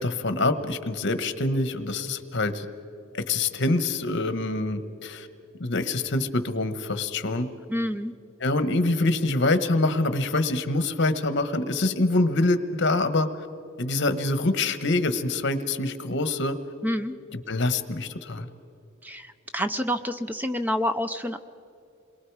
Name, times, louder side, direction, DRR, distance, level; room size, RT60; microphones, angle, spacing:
voice 1, 0.0-2.7 3.1-5.3 5.6-7.5 8.4-13.3 13.8-16.6 17.5-18.5, left 2 dB, 60° left, 10 dB, 1.3 m, -25 dB
voice 2, 7.7-8.1 16.8-17.1 19.0-21.4, equal, 10° right, 9 dB, 0.5 m, -28 dB
28.5 x 22.5 x 4.8 m, 2.6 s
head